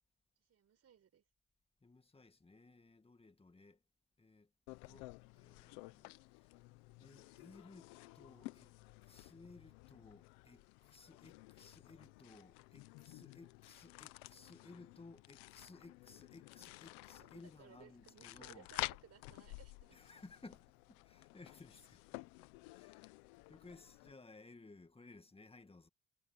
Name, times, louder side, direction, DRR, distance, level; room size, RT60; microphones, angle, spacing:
voice 1, 0.5-1.2 17.2-20.0 22.7-22.8, right 8 dB, 55° right, 5.5 m, -62 dB
voice 2, 1.8-3.8 4.2-4.5 4.8-6.5 7.0-8.8 9.0-18.7 19.9-22.1 22.7-23.1 23.5-25.9, left 3 dB, 20° left, 2.2 m, -59 dB
sound 1, 4.7-24.1, left 23 dB, 90° left, 1.0 m, -52 dB
supercardioid pair, 60°, 30 cm